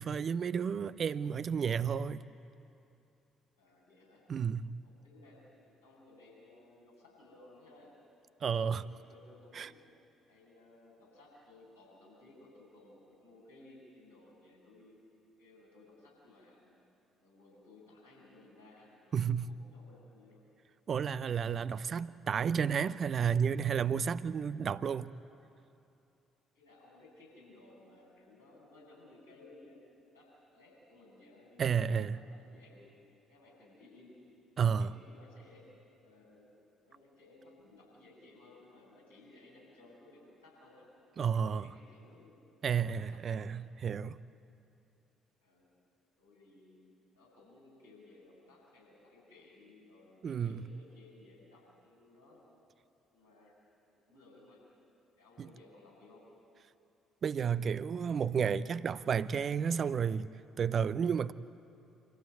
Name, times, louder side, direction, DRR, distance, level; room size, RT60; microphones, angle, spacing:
voice 1, 0.0-2.2 4.3-4.7 8.4-8.8 9.5-9.7 19.1-19.6 20.9-25.1 31.6-32.2 34.6-34.9 41.2-41.7 42.6-44.2 50.2-50.7 55.4-55.5 57.2-60.3 60.6-61.3, right 7 dB, 45° right, 0.6 m, -32 dB
voice 2, 3.6-4.2 4.8-7.9 8.5-9.8 10.3-15.0 15.4-16.7 17.2-19.2 19.5-20.4 26.5-29.8 30.1-32.9 33.3-34.2 34.5-35.7 36.0-36.5 36.8-40.9 41.2-42.4 42.8-43.4 45.4-45.7 46.2-46.8 47.1-52.4 53.1-53.5 54.1-54.6 55.2-56.2, left 2 dB, 85° left, 7.7 m, -59 dB
26.0 x 15.5 x 9.3 m
figure-of-eight pair, 45°, 0 cm